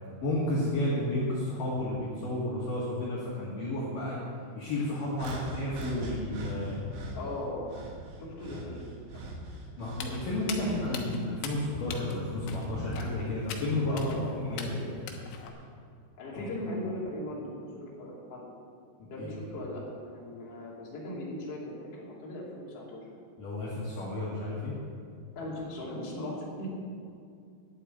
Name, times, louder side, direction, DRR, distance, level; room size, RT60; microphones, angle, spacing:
voice 1, 0.2-4.2 4.5-6.8 9.8-14.8 16.3-16.5 19.2-19.4 23.4-24.7, left 1 dB, 55° left, -7 dB, 3.0 m, -32 dB
sound 1, 5.2-7.2 7.7-11.0 11.4-12.8 13.6-13.8 14.7-14.9, right 1 dB, 70° right, 3.7 m, -42 dB
voice 2, 7.2-7.7 8.2-9.3 13.9-14.9 16.2-18.5 19.1-23.0 25.3-26.7, left 1 dB, 40° left, -5 dB, 2.9 m, -39 dB
Walk footsteps, 9.9-15.5, left 4 dB, 70° left, 2.9 m, -41 dB
11.0 x 8.2 x 8.7 m, 2.4 s
omnidirectional pair, 5.5 m